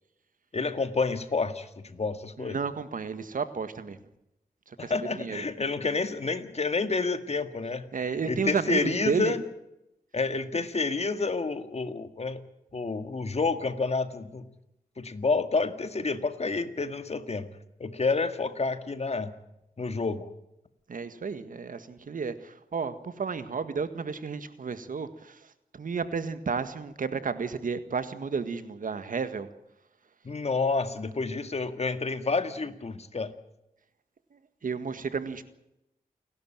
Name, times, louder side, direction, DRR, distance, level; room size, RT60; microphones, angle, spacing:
voice 1, 0.5-2.6 4.8-9.4 10.1-12.4 12.7-14.5 15.0-17.5 17.8-19.3 19.8-20.3 30.2-33.3, left 4 dB, 45° left, 10 dB, 1.9 m, -29 dB
voice 2, 2.4-4.0 4.8-5.4 7.9-9.3 20.9-25.4 25.7-29.5 34.6-35.4, right 5 dB, 65° right, 11 dB, 1.8 m, -32 dB
29.0 x 12.0 x 9.0 m, 0.87 s
cardioid pair, 65°, 15 cm